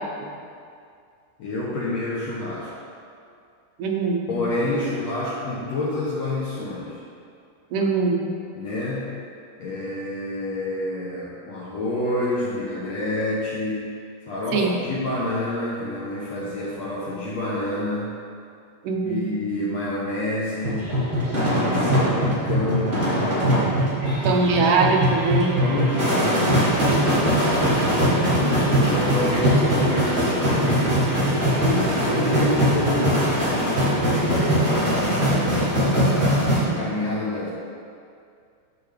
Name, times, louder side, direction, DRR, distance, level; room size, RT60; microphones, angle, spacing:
voice 1, 1.4-2.7 4.3-7.0 8.5-9.1 9.6-13.9 14.2-18.1 19.0-20.9 21.7-23.0 25.6-27.7 28.3-30.9 31.6-36.2 36.5-37.5, left 2 dB, 70° left, -6 dB, 1.6 m, -28 dB
voice 2, 3.8-4.2 7.7-8.2 14.5-14.8 18.8-19.2 24.2-25.6, right 4 dB, 70° right, 0 dB, 2.1 m, -21 dB
sound 1, 20.6-36.6, equal, 20° right, 1.7 m, -21 dB
14.0 x 4.9 x 3.4 m, 2.4 s
omnidirectional pair, 4.1 m